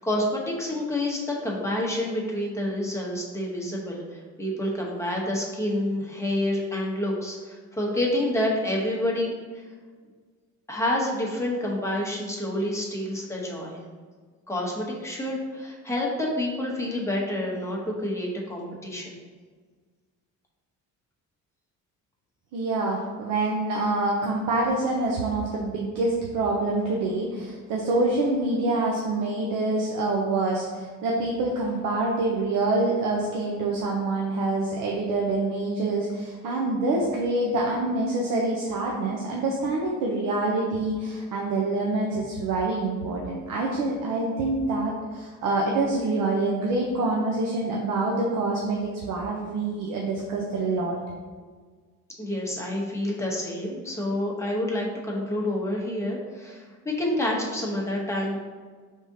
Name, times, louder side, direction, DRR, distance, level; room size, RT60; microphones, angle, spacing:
voice 1, 0.0-9.6 10.7-13.8 14.5-19.2 52.2-58.4, left 1 dB, 10° left, -3 dB, 0.8 m, -28 dB
voice 2, 22.5-51.0, right 2 dB, 75° right, -2 dB, 0.7 m, -26 dB
4.8 x 3.6 x 2.7 m, 1.5 s
cardioid pair, 125°, 33 cm